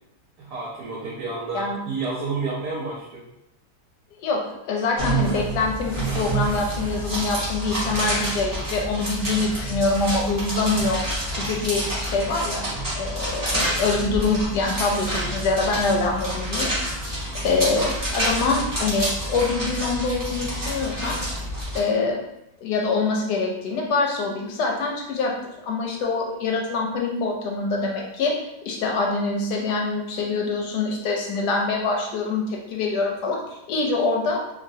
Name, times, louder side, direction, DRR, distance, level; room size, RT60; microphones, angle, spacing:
voice 1, 0.4-3.2, right 3 dB, 70° right, -4 dB, 1.1 m, -30 dB
voice 2, 4.7-11.0 11.4-12.6 13.0-16.7 17.4-21.2 21.7-22.2 22.6-25.3 25.6-28.3 28.7-34.4, left 3 dB, 75° left, 0 dB, 1.0 m, -24 dB
sound 1, 5.0-21.8, right 1 dB, 25° right, 0.4 m, -28 dB
3.1 x 2.4 x 2.6 m, 0.86 s
omnidirectional pair, 2.0 m